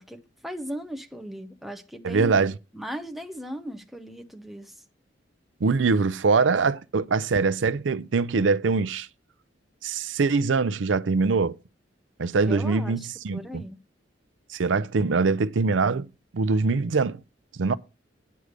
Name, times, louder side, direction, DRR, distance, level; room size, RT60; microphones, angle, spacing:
voice 1, 0.0-2.5 2.7-4.7 12.4-13.8, equal, ahead, 0.8 m, -37 dB
voice 2, 2.0-2.5 5.6-9.1 9.8-11.6 12.2-13.6 14.5-16.1 16.3-17.2 17.6-17.8, right 4 dB, 80° right, 0.5 m, -23 dB
9.6 x 4.9 x 6.6 m
head